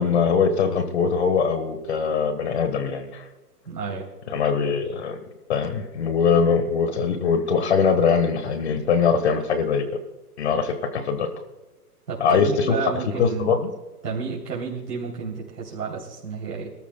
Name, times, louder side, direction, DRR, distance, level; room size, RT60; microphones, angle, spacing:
voice 1, 0.0-3.3 4.3-5.2 5.5-9.8 10.4-11.3 12.2-12.7 13.2-13.7, left 6 dB, 45° left, 9 dB, 1.4 m, -22 dB
voice 2, 3.6-4.1 12.1-13.6 14.0-16.7, right 5 dB, 90° right, -3 dB, 3.3 m, -31 dB
23.5 x 13.5 x 2.2 m, 1.2 s
hypercardioid pair, 165°, 47 cm